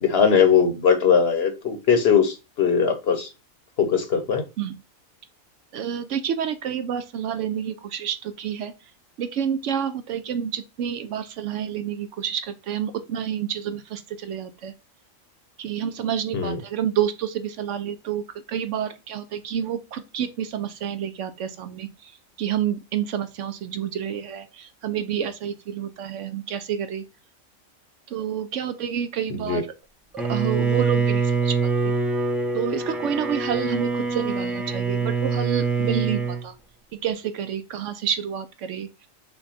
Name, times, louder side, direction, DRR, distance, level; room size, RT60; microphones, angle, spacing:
voice 1, 0.0-3.3 3.8-4.4 16.3-16.6 29.3-29.6, left 6 dB, 55° left, 1.0 m, -20 dB
voice 2, 5.7-8.7 9.2-14.7 15.6-18.2 18.5-22.1 22.4-27.0 28.1-29.7 30.3-31.5 31.8-31.9 32.5-36.5 37.0-39.1, right 9 dB, 70° right, 0.8 m, -29 dB
Bowed string instrument, 30.2-36.4, right 4 dB, ahead, 0.3 m, -24 dB
5.6 x 2.3 x 4.1 m
omnidirectional pair, 1.4 m